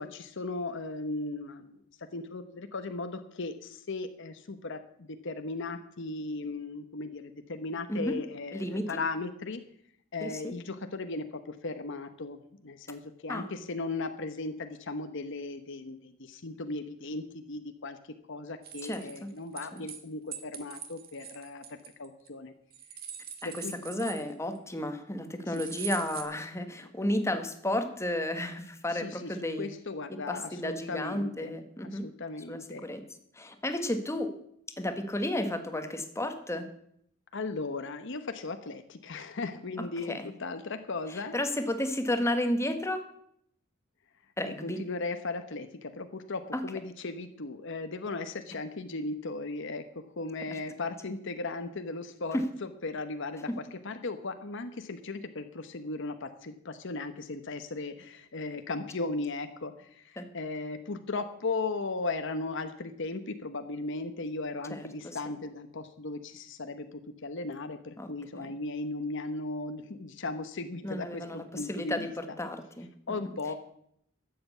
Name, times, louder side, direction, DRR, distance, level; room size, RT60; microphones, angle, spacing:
voice 1, 0.0-1.8 2.1-9.6 10.1-18.0 18.3-22.5 23.4-23.8 25.5-25.6 26.8-26.9 28.9-32.9 37.3-41.3 44.4-72.4 73.1-73.5, left 3 dB, 65° left, 8 dB, 1.0 m, -37 dB
voice 2, 8.5-8.9 10.2-10.5 13.3-13.5 18.8-19.3 19.7-19.8 23.4-29.7 30.3-32.1 32.5-33.0 33.4-34.3 34.8-36.6 39.8-40.3 41.3-43.0 44.4-44.8 46.5-46.6 52.3-52.4 60.2-60.3 64.7-65.2 68.0-68.5 70.8-72.9, left 1 dB, 15° left, 7 dB, 1.3 m, -32 dB
sound 1, 18.6-20.0 20.3-22.3 22.7-24.6 25.5-26.2, right 8 dB, 50° right, 1.5 m, -42 dB
12.5 x 7.8 x 8.2 m, 0.70 s
head